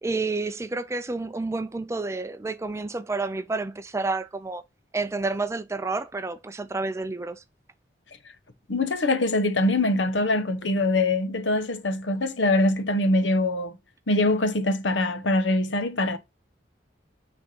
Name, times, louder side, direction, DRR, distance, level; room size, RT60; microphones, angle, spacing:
voice 1, 0.0-4.6 4.9-7.4, right 3 dB, 15° right, 0.4 m, -29 dB
voice 2, 8.7-13.8 14.1-16.2, left 2 dB, 85° left, 0.9 m, -23 dB
6.6 x 3.5 x 5.3 m
head